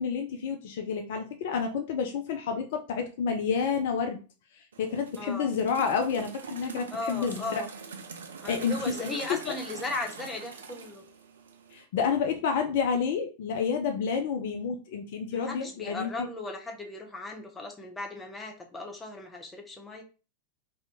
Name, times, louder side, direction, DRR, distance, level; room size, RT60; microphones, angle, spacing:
voice 1, 0.0-4.2 4.6-7.6 8.5-9.5 11.7-16.3, left 6 dB, 55° left, 5 dB, 0.4 m, -29 dB
sound 1, 4.7-11.8, right 5 dB, 65° right, 0.4 m, -44 dB
voice 2, 5.2-5.5 6.9-7.7 8.4-11.0 15.3-20.0, left 2 dB, 10° left, 2 dB, 0.8 m, -37 dB
2.7 x 2.6 x 3.4 m, 0.33 s
figure-of-eight pair, 90°, 0 cm